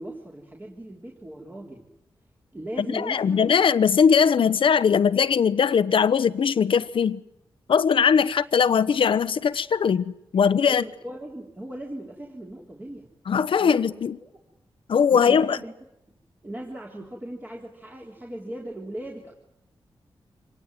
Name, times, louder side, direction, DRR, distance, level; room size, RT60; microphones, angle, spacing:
voice 1, 0.0-1.9 2.5-3.5 10.7-13.1 13.6-13.8 14.2-14.3 15.1-15.7 16.4-19.3, right 1 dB, 20° right, 3.9 m, -38 dB
voice 2, 2.9-7.2 7.7-10.8 13.3-14.2 14.9-15.6, left 6 dB, 75° left, 1.1 m, -20 dB
26.5 x 19.0 x 9.4 m
wide cardioid pair, 120°, 9 cm